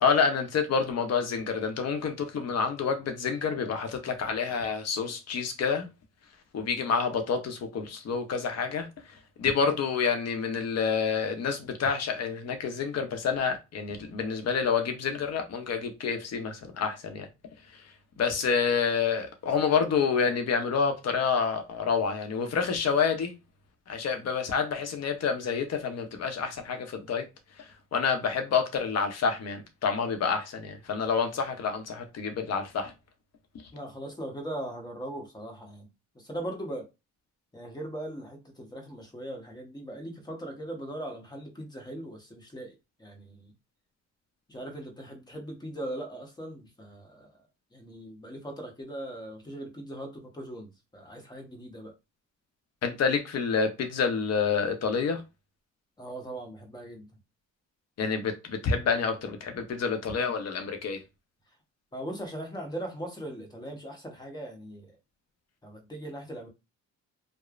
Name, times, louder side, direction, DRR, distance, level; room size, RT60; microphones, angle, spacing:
voice 1, 0.0-5.9 6.5-17.3 17.7-17.8 18.2-23.3 23.9-27.3 27.6-32.9 52.8-55.2 58.0-61.0, left 5 dB, 60° left, 0.7 m, -28 dB
voice 2, 33.7-35.9 36.1-36.9 37.5-43.5 44.5-47.4 47.7-51.9 56.0-57.1 61.9-65.0 65.6-66.5, right 1 dB, 15° left, 0.9 m, -39 dB
3.1 x 2.0 x 2.4 m
cardioid pair, 90°, 30 cm